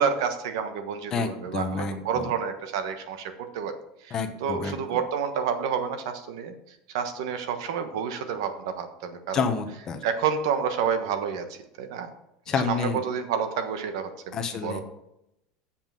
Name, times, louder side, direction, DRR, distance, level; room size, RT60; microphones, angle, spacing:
voice 1, 0.0-3.7 4.0-4.1 4.4-9.4 10.0-12.1 12.5-14.4 14.6-14.8, right 7 dB, 85° right, 8 dB, 1.3 m, -29 dB
voice 2, 1.1-2.3 4.1-4.8 9.3-10.0 12.5-13.0 14.3-14.8, left 5 dB, 25° left, 7 dB, 0.9 m, -29 dB
7.4 x 5.7 x 7.5 m, 0.84 s
cardioid pair, 165°, 2 cm